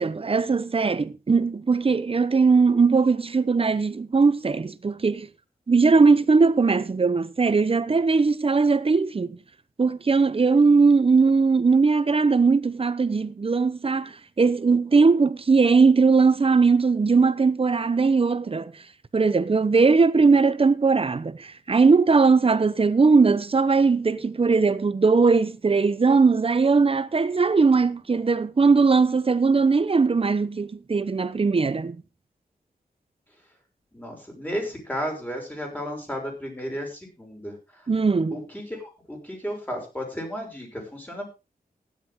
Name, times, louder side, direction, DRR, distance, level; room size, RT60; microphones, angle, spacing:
voice 1, 0.0-5.3 5.7-9.4 9.8-18.7 19.1-32.0 37.9-38.4, right 4 dB, 35° right, 0.9 m, -20 dB
voice 2, 33.9-37.9 38.3-41.3, equal, 10° left, 6.2 m, -33 dB
15.5 x 11.0 x 3.7 m
wide cardioid pair, 135°, 16 cm